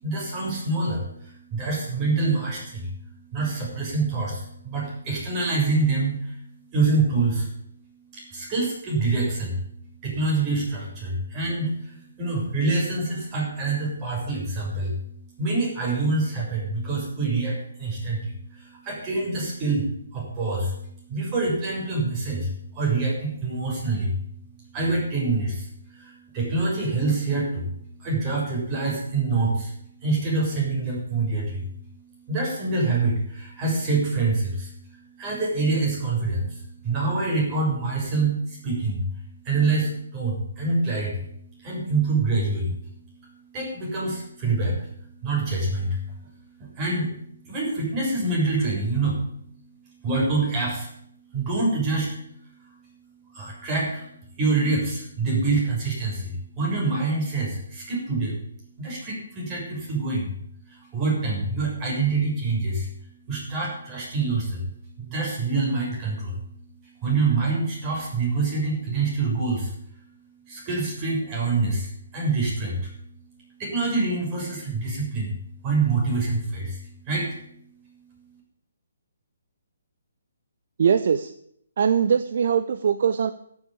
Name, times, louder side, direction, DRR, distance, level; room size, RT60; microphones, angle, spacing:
voice 1, 0.0-6.4 6.7-7.5 8.1-9.6 10.0-15.0 15.4-24.2 24.6-27.7 28.0-42.9 43.2-46.3 46.6-47.1 47.4-49.2 50.0-50.9 51.3-52.2 52.6-52.7 53.3-54.1 54.4-58.3 58.8-60.3 60.7-62.9 63.3-64.6 65.0-66.4 67.0-69.7 70.5-72.9 73.6-75.3 75.6-77.4, right 3 dB, 25° right, -3 dB, 7.2 m, -26 dB
voice 2, 80.8-81.3 81.8-83.3, right 7 dB, 50° right, 12 dB, 0.7 m, -21 dB
13.0 x 8.1 x 8.6 m, 0.70 s
figure-of-eight pair, 135°, 0 cm